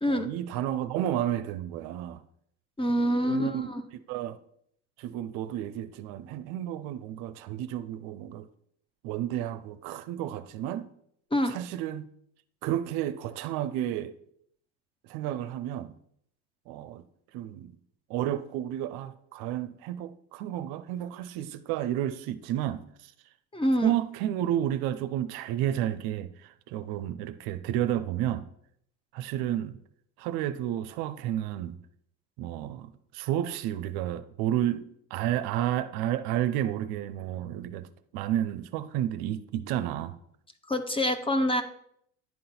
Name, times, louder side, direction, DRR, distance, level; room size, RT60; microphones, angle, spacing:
voice 1, 0.1-2.2 2.9-3.7 4.1-4.4 5.0-8.5 9.0-10.9 11.5-12.0 12.6-14.1 15.0-16.0 16.7-17.0 17.3-17.7 18.1-23.1 23.8-28.5 29.1-29.8 30.2-31.8 32.4-34.8 35.1-37.9 38.1-40.1, right 12 dB, 60° right, 0.6 m, -31 dB
voice 2, 2.8-3.8 11.3-11.6 23.5-24.0 40.7-41.6, equal, 10° left, 0.7 m, -26 dB
10.5 x 3.8 x 4.3 m
hypercardioid pair, 75°, 43 cm